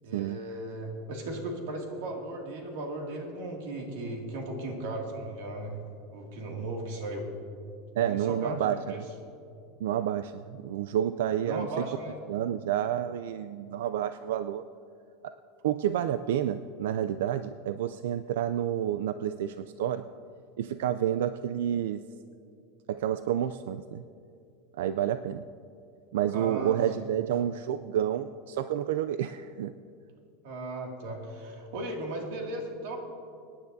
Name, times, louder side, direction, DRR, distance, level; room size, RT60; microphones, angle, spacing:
voice 1, 0.0-5.8 6.1-7.3 8.1-9.0 11.4-12.2 26.3-27.1 30.4-33.0, right 2 dB, 65° right, 1 dB, 2.3 m, -36 dB
voice 2, 8.0-8.8 9.8-11.7 12.3-14.6 15.6-20.0 20.6-22.0 23.0-24.0 24.8-25.4 26.1-29.7, right 10 dB, 85° right, 11 dB, 0.3 m, -29 dB
24.0 x 10.0 x 2.7 m, 2.5 s
supercardioid pair, 175°, 0 cm